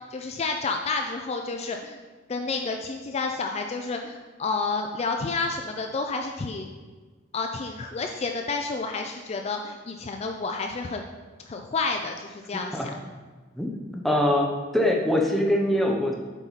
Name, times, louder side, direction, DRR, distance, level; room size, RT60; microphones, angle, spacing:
voice 1, 0.1-2.0 2.3-6.7 7.3-11.0 11.5-12.9, left 4 dB, 35° left, 3 dB, 0.4 m, -30 dB
voice 2, 14.0-14.5 14.7-16.1, left 1 dB, ahead, -1 dB, 0.8 m, -22 dB
7.2 x 5.4 x 4.0 m, 1.4 s
head